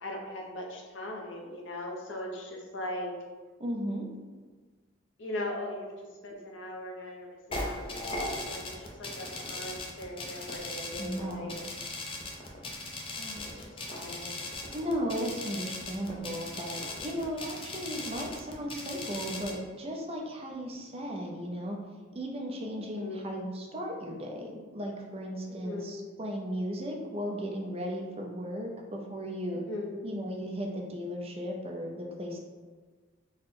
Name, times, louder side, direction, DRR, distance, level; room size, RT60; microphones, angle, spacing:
voice 1, 0.0-3.1 5.2-11.6 13.2-14.3 22.9-23.4 25.5-25.9 29.5-30.1, left 1 dB, 65° left, 0 dB, 0.7 m, -40 dB
voice 2, 3.6-4.1 11.0-11.6 14.7-21.8 22.1-29.7 30.0-32.4, equal, 30° right, 0 dB, 0.5 m, -36 dB
sound 1, 7.5-19.5, left 2 dB, 25° left, 0.5 m, -39 dB
3.7 x 2.1 x 4.1 m, 1.4 s
head